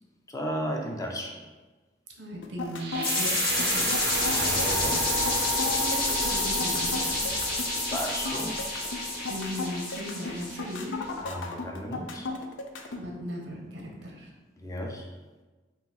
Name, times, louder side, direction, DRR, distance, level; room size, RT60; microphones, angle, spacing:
voice 1, 0.3-1.4 4.3-5.0 7.9-8.6 11.2-12.3 14.6-15.1, equal, 20° left, 1 dB, 0.5 m, -34 dB
voice 2, 2.2-4.1 5.7-7.3 9.3-11.0 12.9-14.3, equal, 85° right, 0 dB, 0.8 m, -37 dB
sound 1, 2.4-13.0, left 3 dB, 85° left, 0.4 m, -35 dB
sound 2, 2.8-10.8, right 1 dB, 65° right, 0.5 m, -34 dB
sound 3, 3.0-10.8, left 2 dB, 50° left, 1.3 m, -29 dB
3.7 x 2.5 x 4.2 m, 1.2 s
head